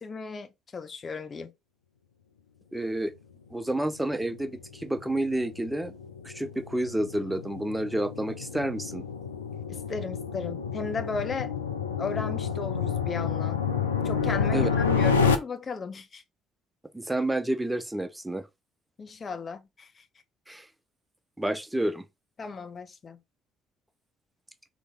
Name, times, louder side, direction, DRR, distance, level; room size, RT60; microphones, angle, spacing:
voice 1, 0.0-1.5 9.7-11.5 12.0-13.6 14.0-16.2 19.0-20.0 22.4-23.2, left 4 dB, 35° left, 0.8 m, -36 dB
voice 2, 2.7-3.1 3.5-5.9 6.2-9.0 14.5-14.7 16.9-18.5 20.5-20.7 21.4-22.1, right 1 dB, 10° right, 0.6 m, -29 dB
sound 1, 4.2-15.4, left 6 dB, 90° left, 0.5 m, -29 dB
4.0 x 3.1 x 3.8 m
hypercardioid pair, 50°, 0 cm